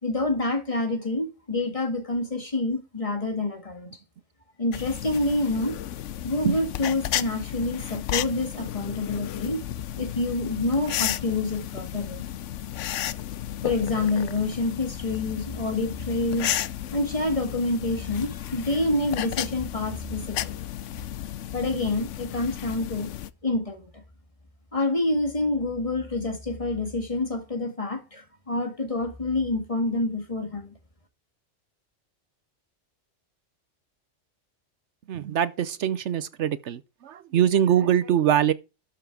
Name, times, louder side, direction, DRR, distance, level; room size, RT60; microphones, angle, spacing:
voice 1, 0.0-3.9 4.6-5.8 6.2-9.6 10.0-12.3 13.6-16.6 16.9-20.5 21.5-23.1 23.4-23.9 24.7-30.7, left 2 dB, 25° left, 2.0 m, -27 dB
sound 1, 4.7-23.3, left 11 dB, 75° left, 1.0 m, -33 dB
voice 2, 35.1-38.5, right 10 dB, 70° right, 0.9 m, -23 dB
12.5 x 5.7 x 4.6 m
omnidirectional pair, 1.3 m